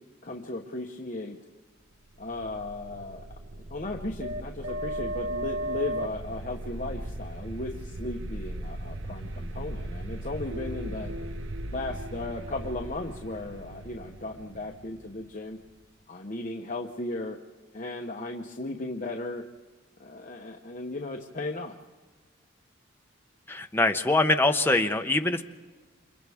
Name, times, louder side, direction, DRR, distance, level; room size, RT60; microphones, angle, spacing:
voice 1, 0.2-1.4 2.2-3.3 3.7-11.1 11.7-15.6 16.1-17.4 17.7-19.4 20.0-21.7, left 2 dB, 40° left, 0 dB, 1.1 m, -36 dB
sound 1, 2.1-15.8, right 1 dB, 70° right, 0.8 m, -37 dB
voice 2, 23.5-25.4, left 2 dB, 10° left, 5 dB, 0.8 m, -23 dB
29.5 x 26.5 x 3.6 m, 1.4 s
head